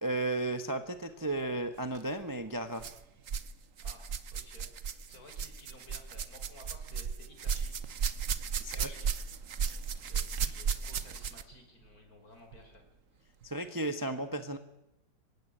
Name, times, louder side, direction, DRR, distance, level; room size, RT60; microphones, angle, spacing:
voice 1, 0.0-2.9 8.6-9.0 13.4-14.6, right 2 dB, 15° right, 8 dB, 1.0 m, -34 dB
sound 1, 1.8-2.0 2.8-3.5 3.8-11.6 12.5-12.6 13.4-13.5, right 6 dB, 50° right, 1.2 m, -35 dB
voice 2, 3.8-7.7 8.7-9.2 9.6-12.8, left 2 dB, 50° left, 4 dB, 5.5 m, -56 dB
25.5 x 16.5 x 10.0 m, 0.93 s
omnidirectional pair, 2.1 m